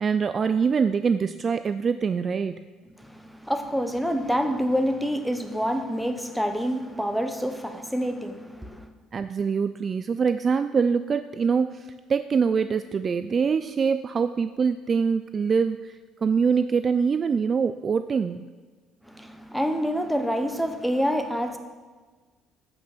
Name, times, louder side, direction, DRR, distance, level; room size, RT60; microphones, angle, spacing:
voice 1, 0.0-2.6 9.1-18.4, right 6 dB, 30° right, 11 dB, 0.3 m, -24 dB
voice 2, 3.0-8.9 19.0-21.6, equal, ahead, 6 dB, 0.9 m, -27 dB
14.5 x 5.9 x 6.6 m, 1.4 s
cardioid pair, 160°, 0 cm